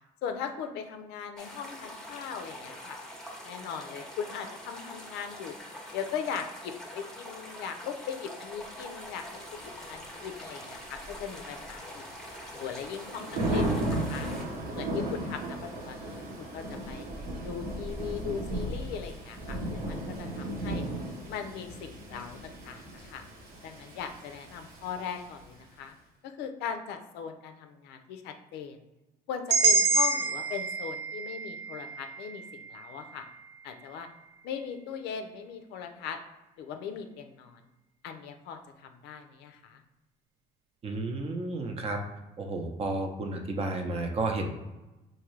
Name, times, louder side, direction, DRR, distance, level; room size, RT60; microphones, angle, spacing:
voice 1, 0.2-3.0 3.4-5.6 5.9-9.2 9.5-12.1 12.5-14.3 14.7-17.1 17.4-20.8 21.3-23.2 23.6-25.9 26.2-28.8 29.3-33.3 33.6-34.1 34.4-36.2 36.6-37.6 38.0-39.8, left 7 dB, 90° left, 6 dB, 0.5 m, -39 dB
sound 1, 1.4-14.4, left 1 dB, 5° left, 0.7 m, -44 dB
Thunder / Rain, 9.0-25.6, right 1 dB, 70° right, 0.9 m, -36 dB
sound 2, 29.5-33.5, right 3 dB, 90° right, 0.5 m, -28 dB
voice 2, 40.8-42.0 42.4-44.5, right 2 dB, 35° right, 3 dB, 0.6 m, -32 dB
3.7 x 2.6 x 3.1 m, 1.0 s
cardioid pair, 110°, 17 cm